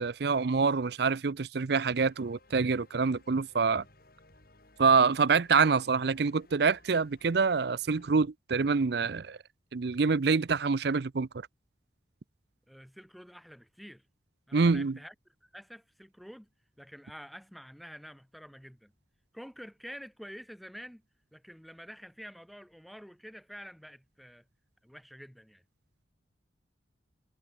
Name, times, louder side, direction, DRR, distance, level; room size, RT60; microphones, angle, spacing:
voice 1, 0.0-3.8 4.8-9.4 9.7-11.3 14.5-15.0, right 5 dB, 55° right, 0.5 m, -26 dB
sound 1, 1.8-8.1, left 2 dB, 50° left, 4.2 m, -60 dB
voice 2, 12.7-14.1 14.5-15.1 15.4-16.5 16.8-18.9 19.3-21.0 21.3-24.4 24.8-25.6, equal, ahead, 3.2 m, -48 dB
head